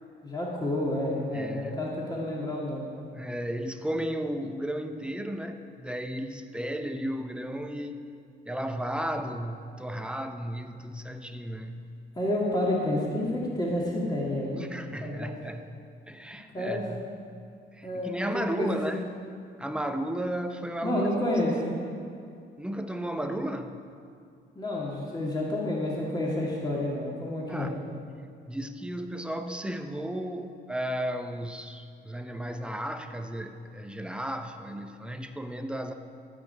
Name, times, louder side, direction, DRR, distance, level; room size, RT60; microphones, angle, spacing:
voice 1, 0.2-2.9 12.1-15.3 16.5-16.8 17.8-18.8 20.8-21.7 24.6-27.7, left 1 dB, 20° left, -4 dB, 2.3 m, -29 dB
voice 2, 1.3-1.9 3.1-8.0 8.5-11.9 14.6-15.7 16.1-17.1 17.7-19.3 19.6-21.1 21.4-21.6 22.6-23.8 27.5-27.7 28.5-35.9, right 1 dB, 5° right, 6 dB, 0.8 m, -34 dB
14.5 x 5.2 x 8.6 m, 2.4 s
cardioid pair, 90°, 20 cm